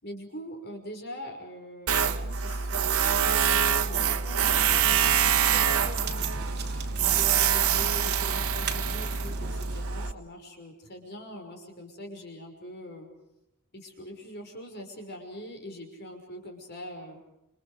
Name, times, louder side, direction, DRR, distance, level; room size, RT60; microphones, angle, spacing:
voice 1, 0.0-13.1 13.7-17.2, equal, 50° left, 3 dB, 5.9 m, -43 dB
Tools, 1.9-10.1, right 8 dB, 85° right, 1.3 m, -25 dB
sound 1, 4.4-9.8, right 4 dB, 50° right, 3.3 m, -40 dB
28.5 x 28.0 x 5.0 m, 0.87 s
head